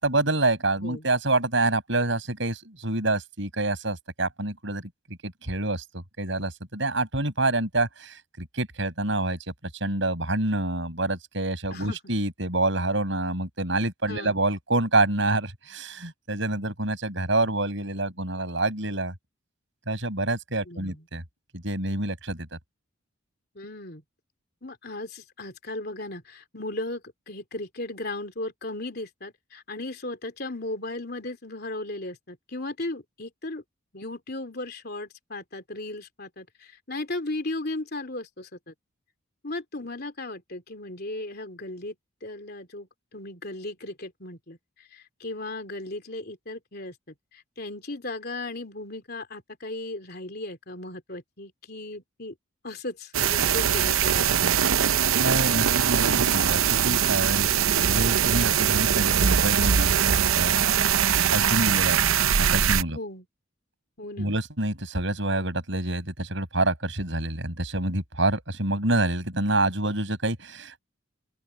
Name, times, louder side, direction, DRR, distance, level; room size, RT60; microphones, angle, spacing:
voice 1, 0.0-4.8 5.2-9.4 9.7-19.1 19.9-21.2 21.5-22.6 55.2-57.5 57.8-60.6 61.3-62.0 62.4-63.0 64.2-70.8, right 2 dB, 60° right, 7.7 m, -27 dB
voice 2, 20.7-21.0 23.5-24.0 24.6-33.6 33.9-38.7 39.4-41.9 42.2-46.9 47.3-52.3 52.6-54.3 62.9-63.3 64.0-64.3, left 2 dB, 45° left, 3.3 m, -36 dB
sound 1, 53.1-62.8, right 8 dB, 80° right, 0.7 m, -22 dB
open air
head